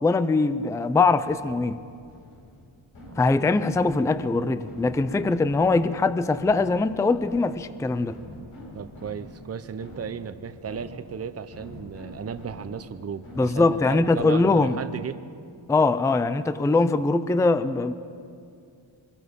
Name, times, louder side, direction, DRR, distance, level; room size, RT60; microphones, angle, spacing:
voice 1, 0.0-1.8 3.2-8.2 13.4-14.8 15.7-17.9, left 3 dB, 5° left, 13 dB, 0.4 m, -22 dB
sound 1, 1.2-14.7, equal, 85° left, 5.4 m, -45 dB
voice 2, 8.7-15.2, right 6 dB, 30° right, 10 dB, 0.7 m, -35 dB
24.0 x 21.5 x 5.3 m, 2.4 s
wide cardioid pair, 145°, 47 cm